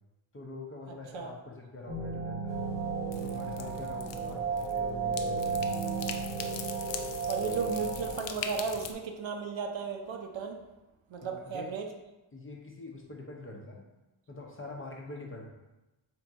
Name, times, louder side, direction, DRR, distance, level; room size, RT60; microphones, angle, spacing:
voice 1, 0.3-2.6 3.2-6.0 11.2-11.7 12.3-13.8 14.3-15.4, left 2 dB, 25° left, 0 dB, 0.7 m, -44 dB
sound 1, 1.9-8.1, right 5 dB, 90° right, 1.2 m, -33 dB
sound 2, 2.5-8.9, left 7 dB, 65° left, 0.5 m, -42 dB
voice 2, 7.3-10.6 11.1-11.9, right 5 dB, 70° right, 3 dB, 0.6 m, -35 dB
3.7 x 2.9 x 3.5 m, 1.1 s
cardioid pair, 70°, 49 cm